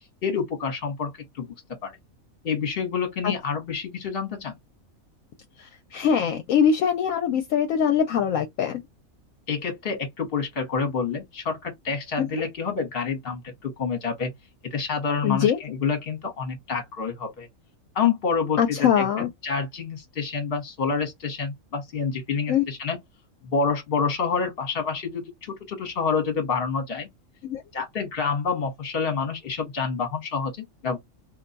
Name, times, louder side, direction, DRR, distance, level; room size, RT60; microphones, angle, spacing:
voice 1, 0.2-1.5 1.8-1.9 2.4-4.6 9.5-14.3 14.6-17.5 17.9-23.0 23.4-27.1 27.7-31.0, left 5 dB, 45° left, 1.2 m, -28 dB
voice 2, 5.6-8.8 12.2-12.5 15.2-15.6 18.6-19.3 22.5-22.6 27.4-27.6, left 8 dB, 70° left, 0.9 m, -23 dB
2.6 x 2.2 x 3.8 m
omnidirectional pair, 1.5 m